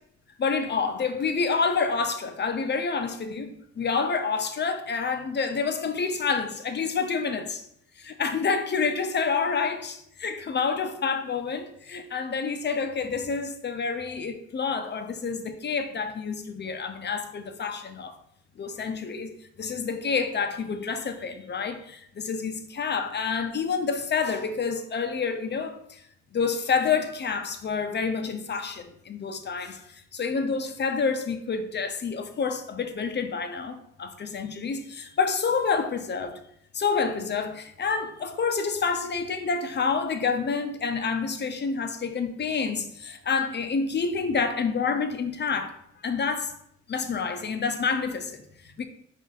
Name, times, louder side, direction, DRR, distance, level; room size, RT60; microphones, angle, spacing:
voice 1, 0.4-7.6 8.0-18.2 18.6-26.0 26.3-36.4 36.7-45.8 46.0-46.5 46.9-48.8, left 5 dB, 35° left, 0.6 m, -28 dB
4.9 x 2.7 x 3.9 m
cardioid pair, 90°, 30 cm